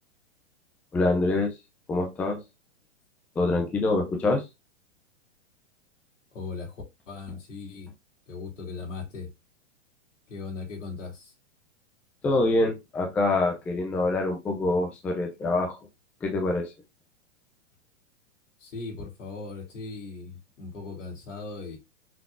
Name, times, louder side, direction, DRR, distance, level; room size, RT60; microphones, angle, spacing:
voice 1, 0.9-1.6 1.9-2.4 3.4-4.5 7.3-7.4 12.2-15.8 16.2-16.7, left 2 dB, 5° left, 0.4 m, -25 dB
voice 2, 6.3-7.9 8.3-9.3 10.3-11.3 18.6-21.8, left 4 dB, 90° left, 3.2 m, -38 dB
5.9 x 3.7 x 2.4 m
hypercardioid pair, 150°, 36 cm